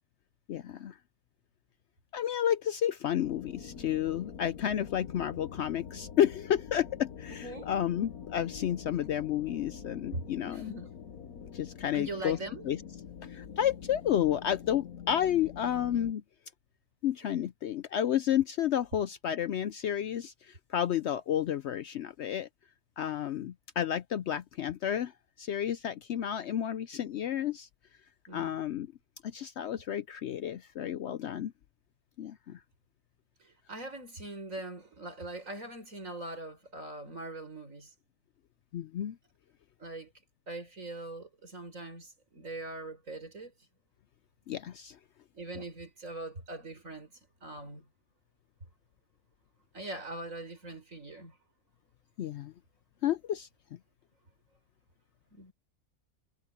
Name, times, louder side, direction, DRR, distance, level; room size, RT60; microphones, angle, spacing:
voice 1, 0.5-1.0 2.1-10.7 11.5-12.4 12.6-12.8 13.3-16.2 17.0-22.5 23.0-25.1 25.4-27.7 28.3-28.9 29.2-31.5 32.2-32.6 38.7-39.2 44.5-45.0 52.2-52.5 53.0-53.5, left 10 dB, 65° left, 0.7 m, -31 dB
sound 1, 3.2-16.1, left 7 dB, 85° left, 1.6 m, -45 dB
voice 2, 7.3-7.7 8.8-8.9 10.1-10.9 11.9-12.6 28.3-28.6 33.4-37.9 39.8-40.1 40.5-43.5 45.3-47.1 47.4-47.9 49.7-51.4 55.3-55.5, right 2 dB, 65° right, 5.5 m, -42 dB
omnidirectional pair, 1.5 m